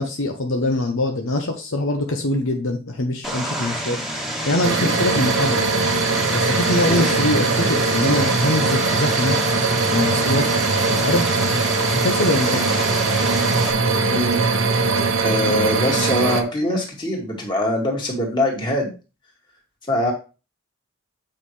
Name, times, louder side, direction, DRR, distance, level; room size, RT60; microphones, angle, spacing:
voice 1, 0.0-4.0 4.4-5.7 6.3-9.4 9.9-10.4 10.9-11.3 11.9-12.7 15.4-15.6, left 2 dB, 60° left, 4 dB, 0.9 m, -23 dB
Vehicle, 3.2-13.7, equal, ahead, 1.5 m, -28 dB
sound 1, 4.6-16.4, right 4 dB, 65° right, 1.1 m, -21 dB
voice 2, 14.1-14.4 15.2-18.9 19.9-20.1, left 1 dB, 20° left, -1 dB, 2.2 m, -23 dB
8.8 x 5.6 x 3.3 m, 0.31 s
head